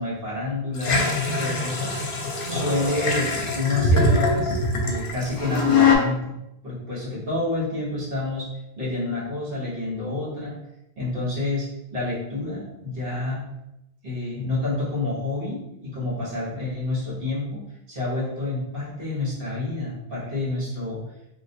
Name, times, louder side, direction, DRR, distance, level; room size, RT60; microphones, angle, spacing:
voice 1, 0.0-1.9 2.5-6.3 6.6-8.5 8.8-10.5 11.0-13.4 14.0-21.0, left 2 dB, 65° right, -6 dB, 1.4 m, -29 dB
sound 1, 0.8-6.0, left 3 dB, 60° left, 0.8 m, -22 dB
3.1 x 2.6 x 2.7 m, 0.89 s
omnidirectional pair, 1.1 m